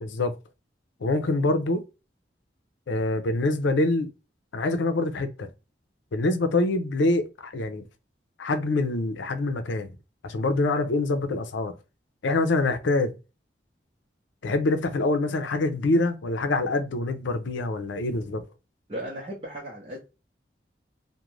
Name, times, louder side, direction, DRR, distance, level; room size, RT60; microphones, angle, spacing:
voice 1, 0.0-0.3 1.0-1.8 2.9-4.1 4.5-5.5 6.1-7.8 8.4-9.9 10.2-11.7 12.2-13.1 14.4-18.4, left 2 dB, 85° left, 0.5 m, -25 dB
voice 2, 18.9-20.0, right 1 dB, 35° right, 0.7 m, -36 dB
2.4 x 2.1 x 3.0 m
head